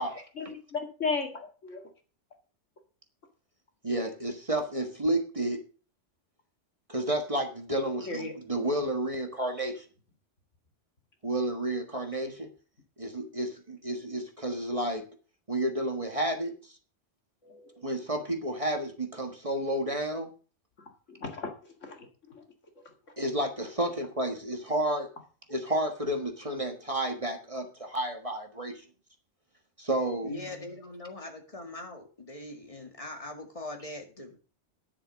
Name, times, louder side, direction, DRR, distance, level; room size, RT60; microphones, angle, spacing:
voice 1, 0.4-1.9 8.1-8.3 17.4-17.7 21.2-22.4 30.2-30.3, left 4 dB, 75° left, 4 dB, 2.4 m, -35 dB
voice 2, 3.8-5.6 6.9-9.8 11.2-12.5 13.0-15.0 15.5-16.8 17.8-20.3 23.2-25.1 25.5-28.8 29.8-30.3, right 1 dB, 25° right, 4 dB, 1.6 m, -31 dB
voice 3, 30.2-34.4, left 2 dB, 30° left, 3 dB, 2.1 m, -41 dB
10.5 x 7.2 x 6.4 m, 0.38 s
omnidirectional pair, 1.3 m